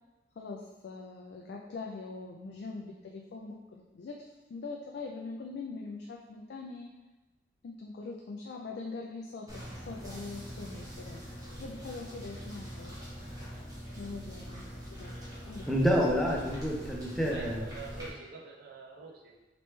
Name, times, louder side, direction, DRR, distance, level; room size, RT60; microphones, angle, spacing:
voice 1, 0.4-6.9 7.6-11.2 11.6-13.0 14.0-14.6 14.9-15.1 15.4-15.9, left 3 dB, 65° left, -1 dB, 0.3 m, -42 dB
sound 1, 9.5-18.1, equal, 20° right, 1.0 m, -43 dB
voice 2, 15.7-17.7, equal, ahead, -3 dB, 0.5 m, -28 dB
voice 3, 17.3-19.4, right 4 dB, 60° right, -1 dB, 0.5 m, -46 dB
3.2 x 3.0 x 3.1 m, 1.1 s
head